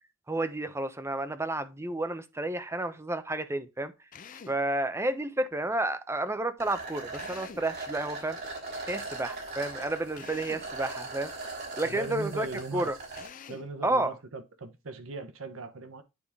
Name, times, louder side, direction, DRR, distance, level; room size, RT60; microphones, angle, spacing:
voice 1, 0.3-3.9 4.5-8.4 8.9-11.3 11.7-12.5 12.7-13.0 13.8-14.1, right 2 dB, 15° right, 0.7 m, -31 dB
Drill, 4.1-4.7 7.1-7.8 10.1-10.8 13.1-13.8, left 6 dB, 40° left, 0.6 m, -47 dB
sound 1, 6.6-13.3, right 3 dB, 55° right, 3.2 m, -40 dB
voice 2, 11.8-12.9 13.5-16.0, right 3 dB, 80° right, 1.0 m, -39 dB
9.5 x 3.6 x 3.5 m
head